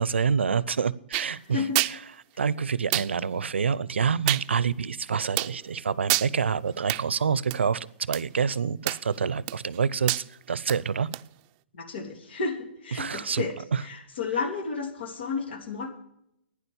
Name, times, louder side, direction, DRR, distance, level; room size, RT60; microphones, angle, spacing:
voice 1, 0.0-1.6 2.4-10.1 10.5-11.1 12.9-13.4 13.7-13.8, right 6 dB, 90° right, 22 dB, 0.6 m, -27 dB
sound 1, 1.1-1.3 1.7-2.0 2.9-3.1 4.3-4.5 5.4-5.5 6.1-6.3 6.9-7.0 7.5-7.6 8.1-8.2 8.9-9.2 9.5-9.8 10.1-10.2 10.7-10.8 11.1-11.2, right 19 dB, 40° right, 0.5 m, -26 dB
voice 2, 1.5-1.8 11.7-15.9, left 4 dB, 70° left, 6 dB, 3.0 m, -32 dB
11.5 x 9.8 x 7.0 m, 0.76 s
hypercardioid pair, 130°, 6 cm